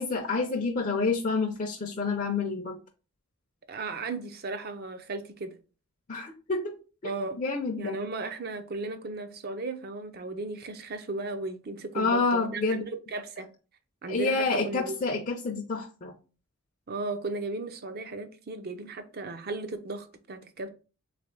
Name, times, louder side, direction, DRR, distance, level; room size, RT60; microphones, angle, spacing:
voice 1, 0.0-2.8 6.1-6.8 7.4-8.0 11.9-12.8 14.1-16.1, left 4 dB, 35° left, 0.5 m, -28 dB
voice 2, 3.7-5.5 7.0-7.4 7.8-13.5 14.0-15.0 16.9-20.7, right 3 dB, 45° right, 0.5 m, -35 dB
3.5 x 3.3 x 3.8 m
head